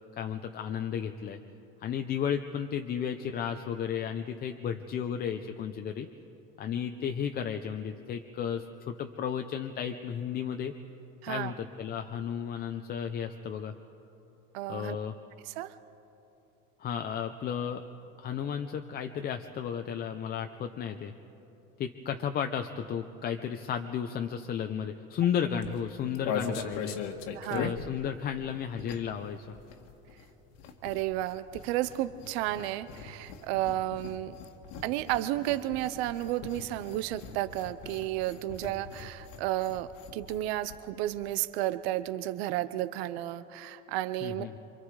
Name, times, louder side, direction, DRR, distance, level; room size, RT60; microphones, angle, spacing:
voice 1, 0.2-1.4 1.8-6.1 6.6-10.7 11.2-13.7 14.7-15.1 16.8-17.8 18.2-21.1 21.8-27.0 27.5-29.5 44.2-44.6, left 8 dB, 30° left, 6 dB, 0.7 m, -33 dB
voice 2, 14.5-15.0 15.5-15.7 27.3-27.7 30.8-34.3 34.8-44.5, right 14 dB, 75° right, 13 dB, 0.8 m, -32 dB
sound 1, 25.5-29.3 29.5-40.4 40.7-40.8 41.0-41.3, left 6 dB, 65° left, 1.9 m, -40 dB
28.0 x 24.5 x 4.9 m, 3.0 s
cardioid pair, 150°, 31 cm